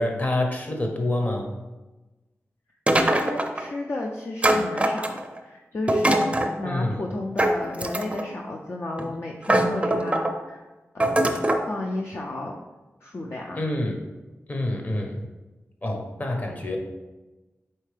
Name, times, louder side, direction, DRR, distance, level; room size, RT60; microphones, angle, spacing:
voice 1, 0.0-1.5 6.6-7.1 13.6-14.0 14.5-15.2 15.8-16.8, left 1 dB, 35° left, 2 dB, 0.9 m, -27 dB
sound 1, 2.9-3.7 4.4-5.4 5.9-6.5 7.4-8.3 9.0-9.1 9.4-10.3 11.0-11.7, right 1 dB, 25° right, 0.5 m, -22 dB
voice 2, 3.0-10.7 10.9-11.4 11.7-12.6 13.0-13.6, left 2 dB, 50° left, 0 dB, 0.5 m, -33 dB
4.4 x 3.3 x 3.3 m, 1.1 s
cardioid pair, 45°, 5 cm